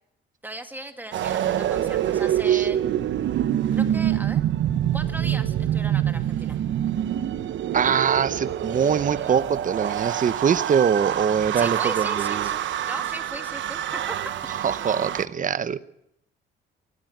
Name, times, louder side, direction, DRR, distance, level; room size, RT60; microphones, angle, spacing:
voice 1, 0.4-2.8 3.7-4.4 4.9-6.6 11.5-14.3, right 1 dB, 10° right, 7 dB, 2.2 m, -37 dB
sound 1, 1.1-15.3, right 11 dB, 70° right, 1.0 m, -26 dB
voice 2, 7.7-12.5 14.5-15.8, right 7 dB, 40° right, 15 dB, 0.9 m, -23 dB
25.0 x 13.5 x 8.0 m, 0.78 s
cardioid pair, 90°, 20 cm